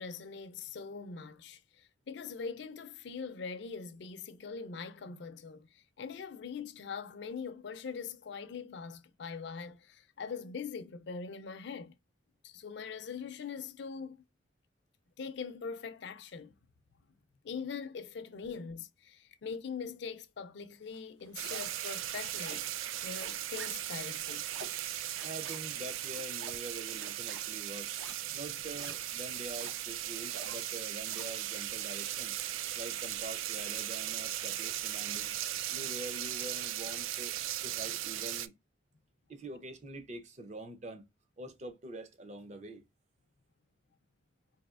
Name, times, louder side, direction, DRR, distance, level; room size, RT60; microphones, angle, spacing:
voice 1, 0.0-12.0 12.4-14.1 15.2-16.5 17.4-22.6 23.0-24.5, left 5 dB, 60° left, 0.4 m, -42 dB
sound 1, 20.9-21.8 22.1-31.4, right 4 dB, 75° right, 0.7 m, -50 dB
sound 2, 21.4-38.5, right 12 dB, 90° right, 0.3 m, -38 dB
voice 2, 25.2-27.9 28.3-32.4 32.7-35.3 35.7-37.3 37.6-38.5 39.3-41.0 41.4-42.8, right 1 dB, 35° right, 0.5 m, -45 dB
4.1 x 2.7 x 2.3 m
head